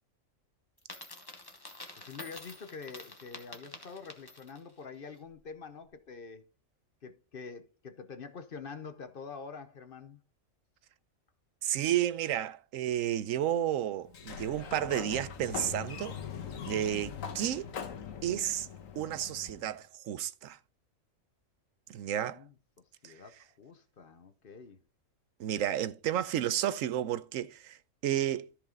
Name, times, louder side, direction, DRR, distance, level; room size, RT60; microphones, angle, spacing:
Coin (dropping), 0.8-4.7, left 2 dB, 20° left, 1.3 m, -48 dB
voice 1, 1.9-6.5 7.0-10.2 22.2-22.5 23.0-24.8, left 5 dB, 50° left, 0.9 m, -46 dB
voice 2, 11.6-16.2 16.7-17.7 18.2-18.7 19.0-20.6 21.9-22.4 23.0-23.1 25.4-28.7, right 11 dB, 85° right, 1.0 m, -32 dB
Sliding door, 14.1-19.7, left 7 dB, 85° left, 1.4 m, -41 dB
13.5 x 4.9 x 3.8 m
omnidirectional pair, 1.4 m